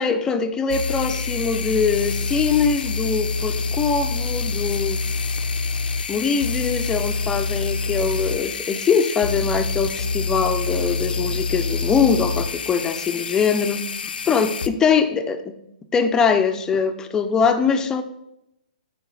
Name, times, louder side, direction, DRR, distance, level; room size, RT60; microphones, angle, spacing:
voice 1, 0.0-5.0 6.1-15.5 15.9-18.0, left 6 dB, 15° left, 7 dB, 0.7 m, -22 dB
sound 1, 0.7-14.7, left 4 dB, 80° left, 0.8 m, -26 dB
13.5 x 5.0 x 4.9 m, 0.84 s
hypercardioid pair, 145°, 5 cm